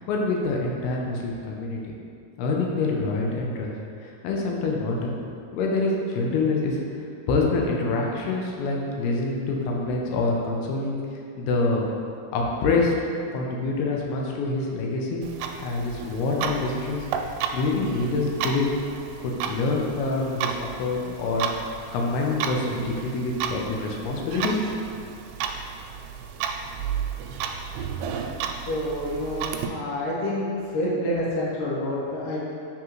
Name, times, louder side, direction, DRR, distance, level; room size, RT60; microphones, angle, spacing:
voice 1, 0.0-1.9 2.4-3.7 4.0-5.1 5.5-6.8 7.3-10.9 11.4-11.8 12.3-12.9 13.3-15.2 15.6-18.7 19.2-21.5 21.9-24.9, left 3 dB, 85° left, -1 dB, 2.7 m, -26 dB
Clock, 15.2-29.7, right 7 dB, 80° right, 2.3 m, -33 dB
voice 2, 28.7-32.4, left 1 dB, 60° left, -6 dB, 2.3 m, -28 dB
10.5 x 3.6 x 3.0 m, 2.4 s
omnidirectional pair, 4.5 m